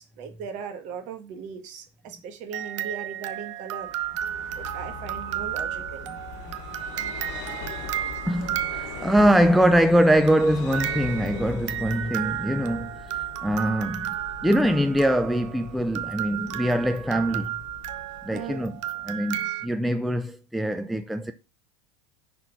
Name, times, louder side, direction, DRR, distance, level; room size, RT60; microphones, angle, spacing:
voice 1, 0.0-3.9 4.6-6.2 18.3-18.6, right 6 dB, 50° right, 1.6 m, -38 dB
sound 1, 2.5-9.5 10.3-19.7, right 12 dB, 75° right, 0.8 m, -33 dB
Vehicle, 3.9-19.3, left 7 dB, 60° left, 1.3 m, -41 dB
voice 2, 8.3-14.1 14.4-17.6 18.2-21.3, equal, ahead, 0.5 m, -23 dB
5.8 x 4.3 x 6.2 m
hypercardioid pair, 100°, 16 cm